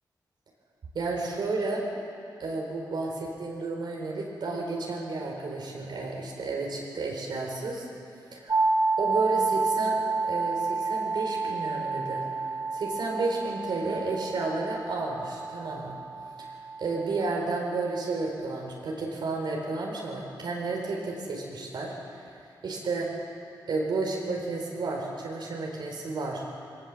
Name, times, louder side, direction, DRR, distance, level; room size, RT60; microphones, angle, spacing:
voice 1, 0.9-1.8 2.4-7.9 8.3-8.6 9.0-16.0 16.8-22.3 22.6-23.1 23.7-26.4, right 3 dB, 75° right, -1 dB, 4.5 m, -32 dB
sound 1, 8.5-18.3, right 4 dB, 45° right, 2.6 m, -30 dB
22.5 x 18.0 x 7.6 m, 2.5 s
wide cardioid pair, 100°, 8 cm